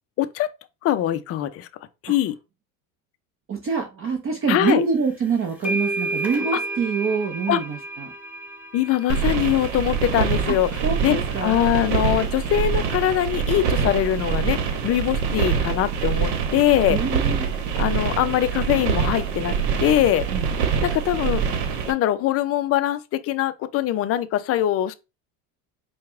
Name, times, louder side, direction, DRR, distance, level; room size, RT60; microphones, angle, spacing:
voice 1, 0.2-0.5 0.8-1.7 2.0-2.4 4.5-4.8 7.5-7.6 8.7-10.7 11.0-11.2 11.4-14.6 14.8-17.0 17.8-19.5 19.8-20.2 20.8-21.4 21.9-24.9, left 12 dB, 35° left, 0.4 m, -22 dB
voice 2, 3.5-8.1 10.5-10.6 10.8-11.6 16.9-17.5 20.3-20.5, right 5 dB, 30° right, 0.7 m, -25 dB
sound 1, 4.7-5.0 5.3-12.6, right 2 dB, 5° right, 1.2 m, -33 dB
sound 2, 9.1-21.9, right 6 dB, 75° right, 1.0 m, -25 dB
4.6 x 2.3 x 3.5 m
supercardioid pair, 115°, 46 cm